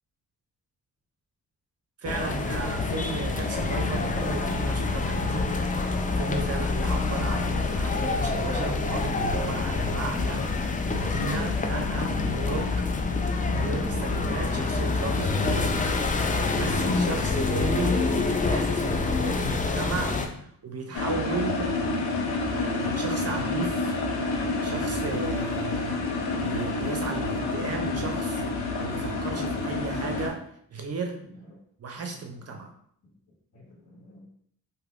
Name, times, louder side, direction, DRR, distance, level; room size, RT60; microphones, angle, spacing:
sound 1, 2.0-20.3, left 3 dB, 20° left, 0.4 m, -26 dB
voice 1, 2.0-10.4 10.8-12.9 13.5-18.0 18.4-21.7 22.1-22.2 22.5-23.9 24.6-26.0 26.3-28.4 28.8-30.5 30.7-31.2 31.8-32.7, right 4 dB, 40° right, 3 dB, 0.5 m, -35 dB
sound 2, 20.9-30.3, left 2 dB, 85° left, 0.6 m, -28 dB
voice 2, 33.5-34.3, left 1 dB, 45° left, -3 dB, 1.4 m, -51 dB
3.2 x 2.7 x 2.4 m, 0.66 s
cardioid pair, 60°, 37 cm